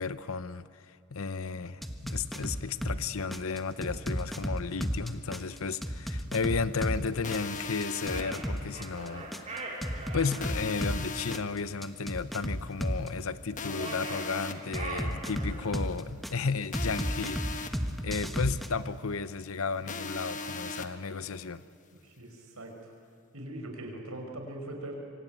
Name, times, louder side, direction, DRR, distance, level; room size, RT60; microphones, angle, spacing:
voice 1, 0.0-9.7 10.1-21.6, left 4 dB, 70° left, 0.8 m, -34 dB
sound 1, 1.8-3.0 3.3-7.0 7.3-11.0 11.3-13.1 14.7-16.3 16.7-18.7, equal, ahead, 1.3 m, -33 dB
sound 2, 7.2-8.2 10.4-11.4 13.6-14.5 16.7-17.7 19.9-20.9, left 3 dB, 35° left, 1.3 m, -38 dB
sound 3, 8.0-10.4 13.6-15.8, right 3 dB, 30° right, 4.7 m, -41 dB
voice 2, 22.0-22.9 23.3-25.0, right 1 dB, 80° right, 5.4 m, -41 dB
26.0 x 24.5 x 9.2 m
head